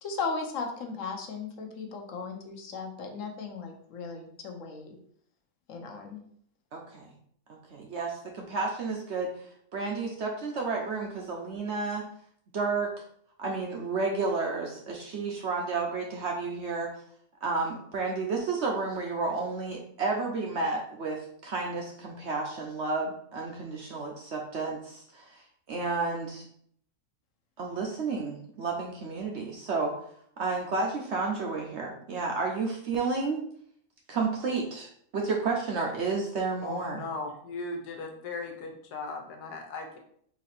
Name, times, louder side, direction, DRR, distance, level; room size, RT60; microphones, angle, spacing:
voice 1, 0.0-5.0 5.7-6.2, left 4 dB, 60° left, 3 dB, 1.0 m, -36 dB
voice 2, 6.7-7.1 7.5-9.3 9.7-12.1 12.5-12.9 13.4-16.9 17.4-25.4 25.7-26.4 27.6-30.0 30.4-33.5 34.1-37.0, right 4 dB, 60° right, 0 dB, 0.7 m, -31 dB
voice 3, 36.6-40.0, left 3 dB, 90° left, 3 dB, 1.4 m, -37 dB
4.0 x 2.7 x 4.2 m, 0.64 s
omnidirectional pair, 1.6 m